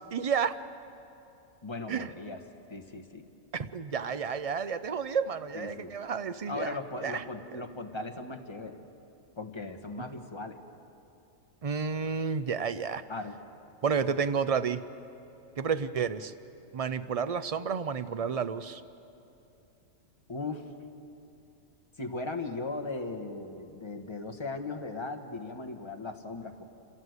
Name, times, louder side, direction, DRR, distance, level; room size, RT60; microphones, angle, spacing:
voice 1, 0.1-0.6 1.9-2.1 3.5-7.2 11.6-13.0 13.8-14.8 15.6-16.3 16.7-18.8, right 6 dB, 50° right, 12 dB, 0.4 m, -31 dB
voice 2, 1.6-2.4 2.7-3.2 5.5-6.0 6.5-8.8 9.4-10.6 13.1-13.4 20.3-20.7 22.0-26.6, left 3 dB, 20° left, 4 dB, 1.3 m, -38 dB
27.0 x 16.5 x 8.1 m, 2.7 s
omnidirectional pair, 1.4 m